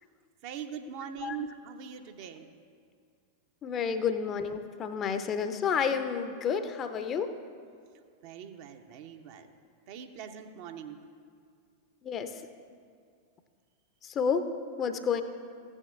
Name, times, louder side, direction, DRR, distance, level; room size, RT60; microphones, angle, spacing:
voice 1, 0.4-2.5 8.2-9.5 9.9-11.0, right 8 dB, 45° right, 6 dB, 0.7 m, -42 dB
voice 2, 3.6-7.3 12.0-12.3 14.0-14.4 14.8-15.2, left 6 dB, 30° left, 9 dB, 0.6 m, -30 dB
15.0 x 9.9 x 2.5 m, 2.2 s
figure-of-eight pair, 90°, 0 cm